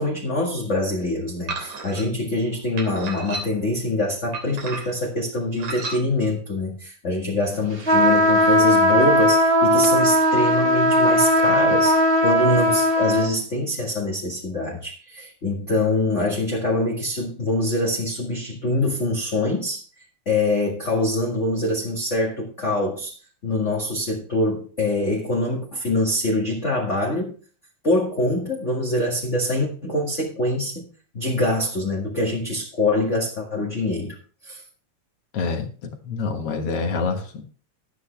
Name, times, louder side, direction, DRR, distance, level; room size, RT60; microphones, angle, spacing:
voice 1, 0.0-19.8 20.3-23.2 23.4-27.3 27.8-30.9 31.1-34.2 34.4-34.6, left 2 dB, 30° left, -2 dB, 1.7 m, -24 dB
sound 1, 1.5-2.1 2.8-3.7 4.3-5.1 5.6-6.0, right 3 dB, 80° right, 4.4 m, -32 dB
sound 2, 7.8-13.3, equal, 25° right, 1.4 m, -18 dB
voice 2, 35.3-37.5, left 4 dB, 55° left, 4 dB, 2.2 m, -27 dB
12.5 x 10.5 x 3.4 m, 0.40 s
omnidirectional pair, 3.3 m